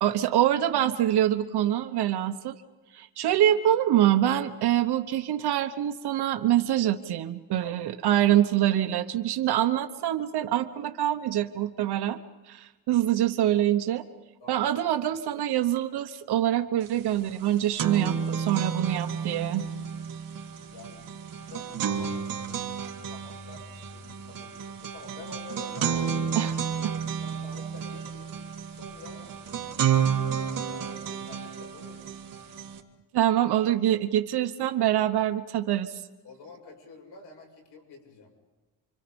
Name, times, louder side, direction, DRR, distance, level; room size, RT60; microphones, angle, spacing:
voice 1, 0.0-2.6 2.9-12.2 12.5-14.0 14.5-19.6 26.3-26.9 33.1-35.9, right 12 dB, 75° right, 8 dB, 1.1 m, -25 dB
voice 2, 7.6-7.9 14.4-14.6 20.7-21.1 21.4-22.5 23.1-26.0 26.8-28.3 28.7-29.2 29.8-32.1 36.2-38.3, left 3 dB, 90° left, 2 dB, 7.5 m, -48 dB
sound 1, 16.9-17.0 17.3-32.8, right 7 dB, 55° right, 2.1 m, -31 dB
29.0 x 26.0 x 5.3 m, 1.2 s
cardioid pair, 165°, 40 cm